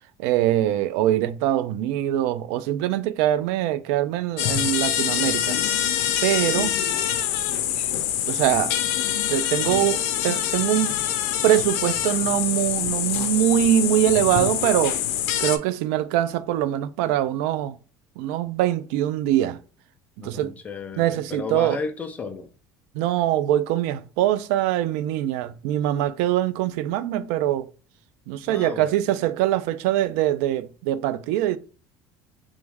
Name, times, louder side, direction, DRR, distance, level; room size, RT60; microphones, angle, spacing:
voice 1, 0.2-5.6 6.2-6.8 8.3-8.7 9.3-11.0 11.4-15.0 15.4-17.8 18.2-19.6 20.2-20.6 21.0-21.8 22.9-27.7 28.3-31.6, right 13 dB, 90° right, 0.4 m, -23 dB
sound 1, 4.4-15.6, left 10 dB, 90° left, 0.6 m, -25 dB
voice 2, 20.2-22.5 28.5-28.9, left 4 dB, 20° left, 0.5 m, -33 dB
3.4 x 3.1 x 3.4 m
cardioid pair, 165°, 8 cm